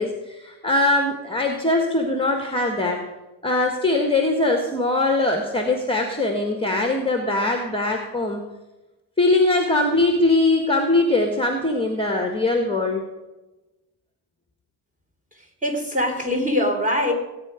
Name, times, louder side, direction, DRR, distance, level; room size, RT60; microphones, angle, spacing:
voice 1, 0.0-3.0 3.4-8.4 9.2-13.0, left 2 dB, 10° left, 3 dB, 1.6 m, -21 dB
voice 2, 15.4-17.1, left 1 dB, 15° right, 1 dB, 3.4 m, -23 dB
19.0 x 9.4 x 5.1 m, 1.1 s
cardioid pair, 125°, 50 cm